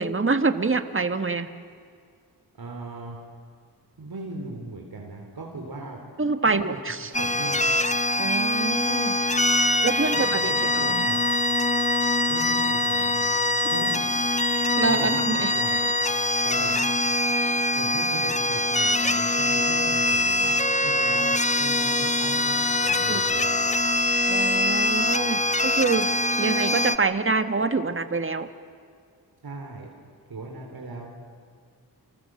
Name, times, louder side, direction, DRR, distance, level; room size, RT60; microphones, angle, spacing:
voice 1, 0.0-1.5 6.2-7.1 8.2-9.2 9.8-10.4 10.7-11.1 14.8-15.5 23.1-23.2 24.3-26.1 26.4-28.5, right 4 dB, 35° right, 9 dB, 1.5 m, -26 dB
voice 2, 2.5-3.2 4.0-6.0 6.5-7.6 10.1-11.2 12.3-13.3 13.6-14.1 14.8-15.8 16.1-16.9 17.7-20.5 20.8-22.6 22.8-23.5 29.4-29.9 30.3-31.1, right 3 dB, 70° right, 0 dB, 3.8 m, -38 dB
sound 1, 7.1-27.0, left 1 dB, 20° left, 1.0 m, -23 dB
29.0 x 25.5 x 7.7 m, 2.2 s
wide cardioid pair, 80°, 38 cm